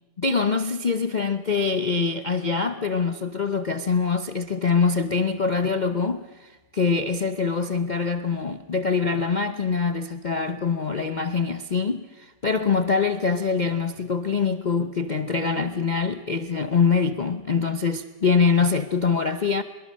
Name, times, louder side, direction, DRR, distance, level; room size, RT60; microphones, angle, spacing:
voice 1, 0.2-19.6, left 5 dB, 45° left, 0.5 m, -24 dB
23.5 x 22.5 x 6.4 m
omnidirectional pair, 1.8 m